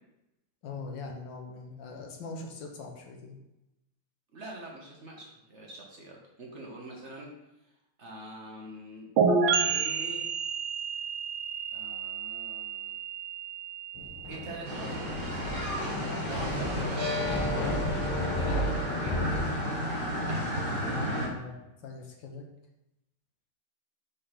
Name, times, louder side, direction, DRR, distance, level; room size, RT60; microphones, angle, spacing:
voice 1, 0.6-3.4 20.8-22.5, left 3 dB, 65° left, 1 dB, 1.5 m, -42 dB
voice 2, 4.3-7.3 8.0-9.1 9.6-10.3 11.7-12.9 14.3-15.7 16.3-18.0 18.3-19.2, right 1 dB, 50° right, -2 dB, 0.9 m, -44 dB
sound 1, 9.2-16.7, right 5 dB, 65° right, 1.6 m, -31 dB
Thunder, 14.0-19.5, left 1 dB, 90° left, 1.9 m, -33 dB
sound 2, 14.6-21.3, equal, 30° right, 1.3 m, -32 dB
5.5 x 3.3 x 5.7 m, 0.92 s
omnidirectional pair, 2.3 m